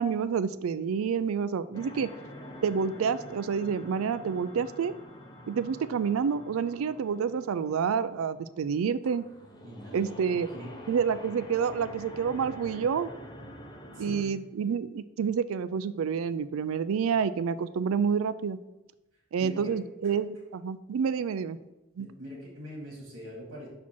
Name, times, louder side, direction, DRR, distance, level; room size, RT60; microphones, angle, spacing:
voice 1, 0.0-2.1 2.6-4.9 5.5-9.2 9.9-10.5 10.9-13.1 14.0-18.6 19.3-21.6 22.0-22.1, right 6 dB, 85° right, 15 dB, 0.4 m, -28 dB
sound 1, 1.7-14.2, equal, 20° left, 0.7 m, -47 dB
voice 2, 9.6-10.1 10.5-10.7 13.9-14.3 19.4-20.1 22.0-23.7, equal, 65° right, -4 dB, 2.1 m, -43 dB
6.0 x 4.3 x 4.4 m, 0.99 s
head